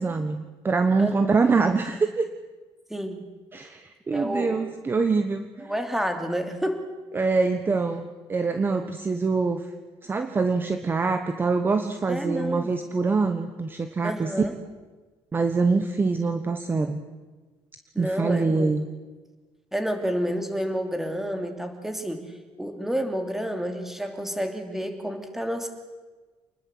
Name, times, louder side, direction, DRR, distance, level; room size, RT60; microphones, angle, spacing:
voice 1, 0.0-2.2 3.5-5.7 7.1-9.7 10.0-14.5 15.3-17.0 18.0-18.9, right 4 dB, 20° right, 8 dB, 1.3 m, -24 dB
voice 2, 4.1-4.6 5.6-6.9 12.1-12.8 14.0-14.5 17.9-18.5 19.7-22.3 22.6-25.7, equal, 5° right, 6 dB, 2.8 m, -29 dB
28.0 x 20.5 x 7.9 m, 1.3 s
cardioid pair, 165°, 10 cm